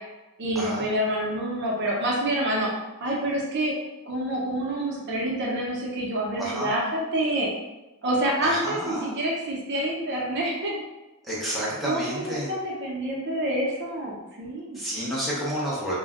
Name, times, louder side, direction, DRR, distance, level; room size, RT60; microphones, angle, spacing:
voice 1, 0.4-2.7 3.0-3.7 4.1-7.5 8.0-10.8 11.4-14.8, right 1 dB, 55° right, -3 dB, 0.6 m, -27 dB
voice 2, 6.4-6.7 8.4-9.1 11.3-12.5 14.7-16.0, right 1 dB, ahead, -8 dB, 0.8 m, -30 dB
2.5 x 2.1 x 3.5 m, 1.1 s
head